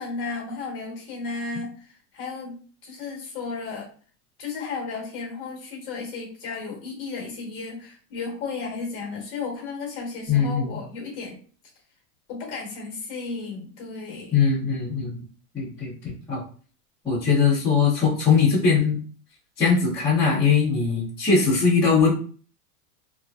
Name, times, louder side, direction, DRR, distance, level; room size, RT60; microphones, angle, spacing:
voice 1, 0.0-3.9 4.4-11.4 12.3-14.4, left 4 dB, 25° left, -2 dB, 1.0 m, -34 dB
voice 2, 10.3-10.8 14.3-15.2 15.5-16.4 17.0-19.0 19.6-22.1, left 5 dB, 5° left, -14 dB, 0.5 m, -21 dB
3.0 x 2.5 x 2.2 m, 0.41 s
supercardioid pair, 175°, 46 cm